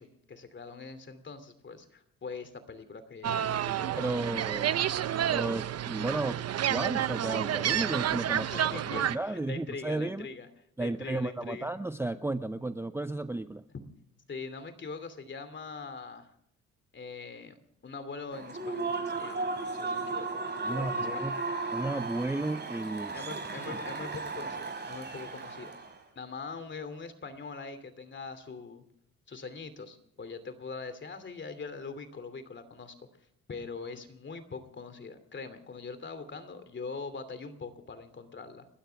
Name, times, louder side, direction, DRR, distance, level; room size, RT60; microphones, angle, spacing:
voice 1, 0.0-4.3 8.3-10.5 10.8-11.7 14.3-16.3 16.9-17.6 17.8-19.5 19.7-20.3 20.6-21.4 23.1-25.8 26.1-28.8 29.3-33.1 33.5-38.7, left 4 dB, 40° left, 10 dB, 2.7 m, -42 dB
sound 1, 3.2-9.2, right 10 dB, 55° right, 0.8 m, -30 dB
voice 2, 4.0-4.8 5.3-6.4 6.7-8.5 8.9-10.3 10.8-13.6 20.6-21.4 21.7-23.3 23.7-23.8, right 2 dB, 10° right, 11 dB, 0.6 m, -33 dB
Human voice / Cheering / Applause, 18.3-26.0, right 3 dB, 35° right, 5.1 m, -35 dB
30.0 x 13.0 x 3.5 m, 0.71 s
cardioid pair, 90°, 30 cm